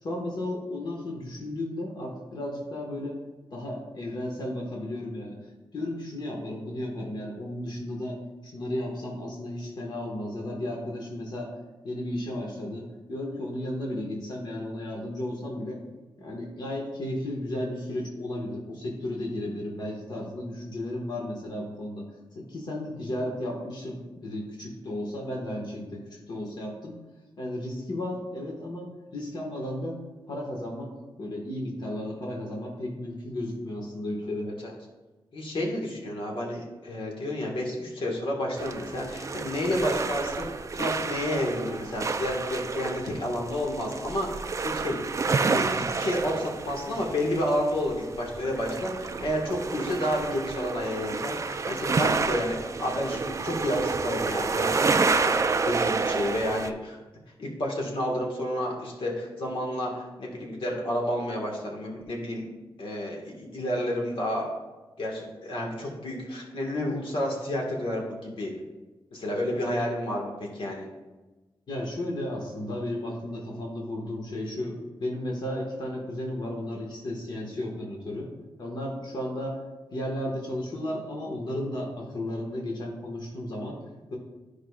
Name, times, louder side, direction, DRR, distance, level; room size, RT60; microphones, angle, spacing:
voice 1, 0.0-3.2 3.5-5.4 5.7-8.2 8.4-11.5 11.8-15.8 16.2-22.0 22.3-27.0 27.4-30.0 30.3-30.9 31.2-34.5 71.7-78.3 78.6-79.6 79.9-83.8, left 1 dB, 50° left, -2 dB, 1.5 m, -34 dB
voice 2, 35.3-45.0 45.4-55.3 55.6-57.0 57.4-62.4 62.8-64.5 65.0-68.5 69.1-70.9, left 1 dB, 70° left, -2 dB, 1.6 m, -30 dB
sound 1, 38.6-56.7, right 4 dB, 35° right, 0.4 m, -29 dB
13.0 x 4.9 x 2.4 m, 1.2 s
wide cardioid pair, 125°, 9 cm